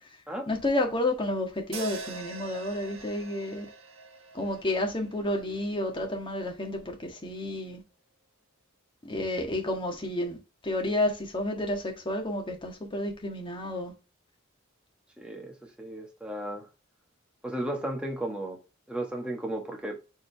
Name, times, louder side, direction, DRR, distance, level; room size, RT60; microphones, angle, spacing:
voice 1, 0.5-3.7 4.3-7.8 9.1-10.4 10.6-13.9, left 1 dB, 25° left, 1.6 m, -30 dB
sound 1, 1.7-6.0, right 3 dB, 85° right, 1.3 m, -43 dB
voice 2, 15.2-16.7 17.4-18.6 18.9-20.0, right 1 dB, 5° right, 1.4 m, -34 dB
7.1 x 3.9 x 3.4 m
head